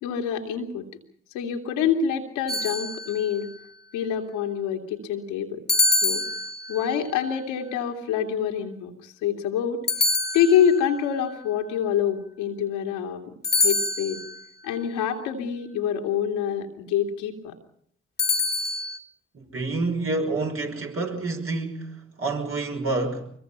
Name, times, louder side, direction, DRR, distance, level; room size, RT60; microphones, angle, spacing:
voice 1, 0.0-0.8 1.3-3.5 3.9-5.6 6.0-6.2 6.7-9.8 10.3-13.2 13.6-14.2 14.6-17.5, left 8 dB, 85° left, 2.7 m, -26 dB
sound 1, 2.5-3.4 5.7-6.9 9.9-10.9 13.4-14.4 18.2-19.0, left 3 dB, 30° left, 2.1 m, -25 dB
voice 2, 19.3-23.3, right 3 dB, 45° right, 5.6 m, -28 dB
25.0 x 22.5 x 5.7 m
hypercardioid pair, 45°, 30 cm